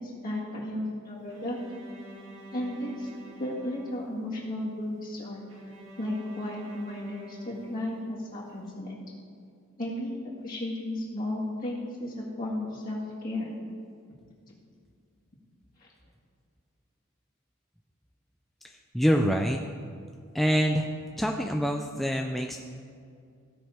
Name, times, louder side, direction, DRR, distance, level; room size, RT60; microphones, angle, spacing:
voice 1, 0.0-1.6 2.5-3.1 3.4-5.4 6.0-8.9 9.8-10.2 10.4-13.5 15.8-15.9, left 1 dB, 40° left, -6 dB, 1.8 m, -34 dB
Bowed string instrument, 1.3-4.5 5.5-8.4, right 1 dB, 60° right, 2.1 m, -48 dB
voice 2, 18.9-19.6 20.3-20.9 21.2-22.6, equal, ahead, 1 dB, 0.3 m, -25 dB
16.0 x 5.6 x 4.3 m, 2.3 s
head